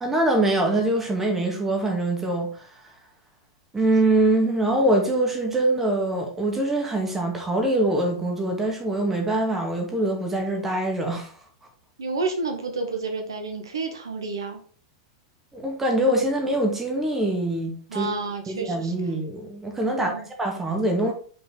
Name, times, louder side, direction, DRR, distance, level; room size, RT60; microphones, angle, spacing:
voice 1, 0.0-2.7 3.7-11.3 15.5-18.1 18.5-21.1, right 1 dB, 10° right, 2.1 m, -24 dB
voice 2, 12.0-14.6 17.9-18.9 19.9-20.3, right 3 dB, 70° right, 1.5 m, -30 dB
5.9 x 5.1 x 3.9 m
figure-of-eight pair, 95°, 2 cm